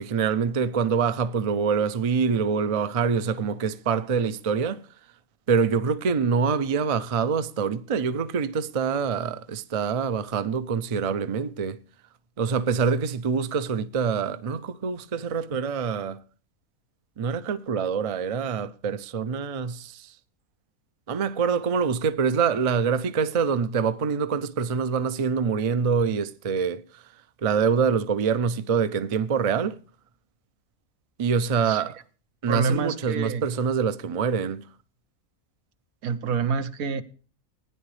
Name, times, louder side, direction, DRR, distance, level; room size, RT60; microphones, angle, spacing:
voice 1, 0.0-4.8 5.5-11.8 12.4-16.2 17.2-20.1 21.1-27.0 27.4-29.8 31.2-32.0 32.4-34.6, right 6 dB, 45° right, 0.4 m, -25 dB
voice 2, 32.5-33.4 36.0-37.0, right 5 dB, 85° right, 1.4 m, -27 dB
15.0 x 9.8 x 3.2 m
omnidirectional pair, 1.4 m